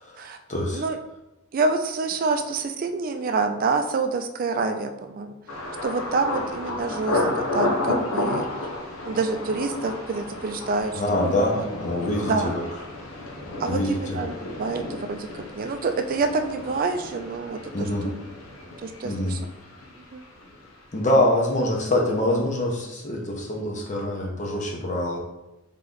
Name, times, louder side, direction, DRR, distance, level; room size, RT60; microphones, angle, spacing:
voice 1, 0.5-0.8 10.9-12.6 13.7-14.2 17.7-18.1 19.0-19.3 20.9-25.2, left 1 dB, 35° left, 0 dB, 0.9 m, -24 dB
voice 2, 1.5-5.3 5.8-8.5 9.0-11.7 12.3-12.5 13.6-14.3 14.6-15.3 15.6-18.1 18.8-19.4 20.1-20.2, right 4 dB, 45° right, 7 dB, 0.4 m, -27 dB
Thunder, 5.5-21.2 21.5-22.1 22.5-22.8, left 2 dB, 85° left, 0.8 m, -32 dB
3.7 x 3.2 x 3.9 m, 0.94 s
head